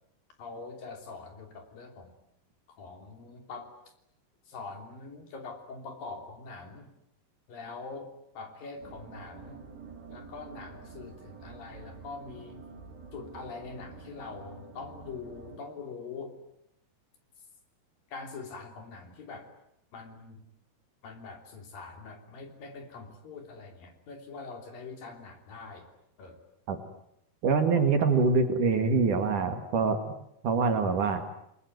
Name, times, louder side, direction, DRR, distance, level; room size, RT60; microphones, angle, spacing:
voice 1, 0.4-2.1 2.7-3.7 4.5-6.9 7.5-9.6 10.1-12.8 13.1-16.4 18.1-19.5 19.9-20.4 21.0-25.9 26.2-26.4, left 4 dB, 55° left, 5 dB, 4.7 m, -43 dB
sound 1, 8.8-15.6, right 4 dB, 80° right, 6.0 m, -48 dB
voice 2, 27.4-30.0 30.4-31.2, right 4 dB, 55° right, 6 dB, 3.1 m, -24 dB
29.0 x 21.0 x 9.4 m, 0.78 s
omnidirectional pair, 4.8 m